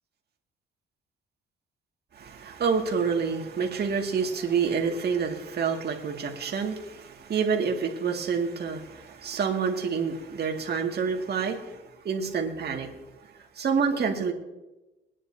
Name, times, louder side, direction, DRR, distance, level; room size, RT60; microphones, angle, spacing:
voice 1, 2.1-11.8 12.0-12.9 13.6-14.3, right 6 dB, 55° right, 1 dB, 2.1 m, -28 dB
23.0 x 9.8 x 2.7 m, 1.0 s
cardioid pair, 90°, 20 cm